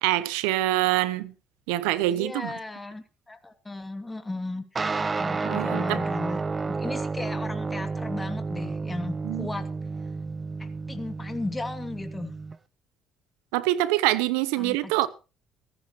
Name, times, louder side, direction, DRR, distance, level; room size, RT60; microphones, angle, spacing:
voice 1, 0.0-1.3 1.7-2.5 5.4-6.0 9.2-9.5 13.5-15.1, right 16 dB, 80° right, 0.9 m, -25 dB
voice 2, 2.1-4.6 5.2-9.7 10.6-12.3 14.6-14.9, left 2 dB, 15° left, 2.5 m, -35 dB
sound 1, 4.8-12.6, right 4 dB, 30° right, 0.9 m, -31 dB
18.0 x 15.0 x 3.1 m
hypercardioid pair, 60°, 0 cm